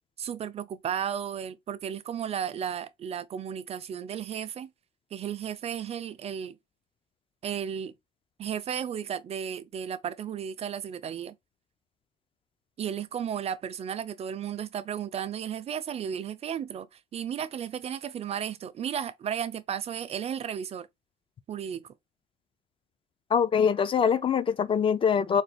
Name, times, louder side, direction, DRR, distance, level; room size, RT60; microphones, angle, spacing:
voice 1, 0.2-4.7 5.1-6.6 7.4-7.9 8.4-11.4 12.8-20.9 21.5-21.9, right 8 dB, 40° right, 0.4 m, -34 dB
voice 2, 23.3-25.4, left 7 dB, 30° left, 0.4 m, -23 dB
4.0 x 2.2 x 3.2 m
cardioid pair, 110°, 17 cm